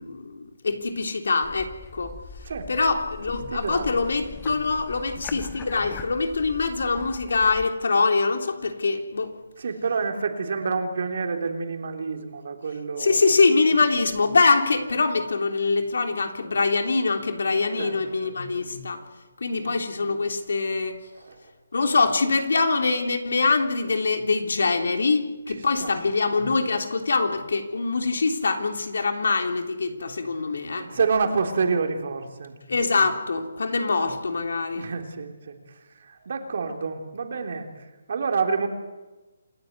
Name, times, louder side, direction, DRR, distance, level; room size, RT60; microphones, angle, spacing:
voice 1, 0.0-1.7 1.9-2.1 2.7-9.3 13.0-19.0 19.4-21.0 21.7-30.9 32.7-34.9, left 4 dB, 75° left, 4 dB, 3.5 m, -24 dB
sound 1, 1.4-7.7, left 6 dB, 15° left, 1.2 m, -42 dB
voice 2, 3.5-4.0 5.2-5.5 9.6-13.3 17.8-17.9 18.2-18.3 19.5-19.7 21.2-21.4 25.8-25.9 30.7-32.5 34.8-35.6 36.1-37.7 38.1-38.7, right 5 dB, 50° right, 4 dB, 3.5 m, -28 dB
28.0 x 14.0 x 9.5 m, 1.1 s
hypercardioid pair, 170°, 0 cm